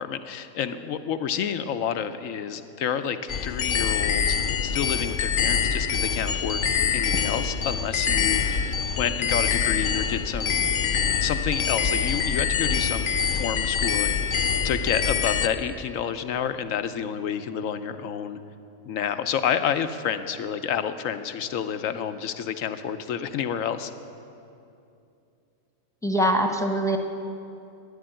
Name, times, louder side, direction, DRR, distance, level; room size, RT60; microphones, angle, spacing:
voice 1, 0.0-6.6 6.9-8.6 9.0-10.6 11.2-13.1 13.3-18.4 18.9-23.9, left 8 dB, 85° left, 10 dB, 1.1 m, -29 dB
sound 1, 3.3-15.5, left 6 dB, 55° left, 0.6 m, -25 dB
voice 2, 26.0-27.0, equal, 5° left, 4 dB, 0.9 m, -23 dB
13.0 x 10.5 x 9.0 m, 2.7 s
omnidirectional pair, 1.4 m